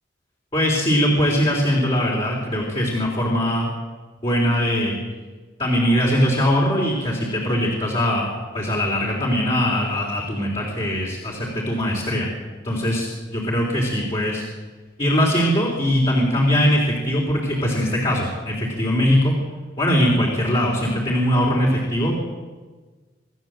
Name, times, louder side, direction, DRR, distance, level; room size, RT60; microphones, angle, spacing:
voice 1, 0.5-3.7 4.2-5.0 5.6-12.3 12.6-14.4 15.0-19.3 19.8-22.2, equal, 30° left, -3 dB, 3.9 m, -21 dB
26.0 x 13.5 x 7.9 m, 1.3 s
head